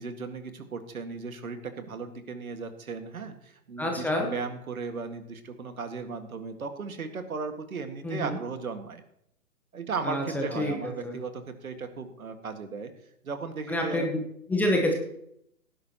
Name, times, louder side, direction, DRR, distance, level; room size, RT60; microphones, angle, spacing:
voice 1, 0.0-9.0 9.7-12.9 13.2-14.1, right 4 dB, 75° right, 7 dB, 1.9 m, -36 dB
voice 2, 3.8-4.3 8.0-8.4 10.0-10.7 11.0-11.2 13.7-14.2 14.5-14.9, left 1 dB, 5° left, 1 dB, 0.9 m, -27 dB
17.5 x 11.0 x 3.0 m, 0.74 s
hypercardioid pair, 135°, 43 cm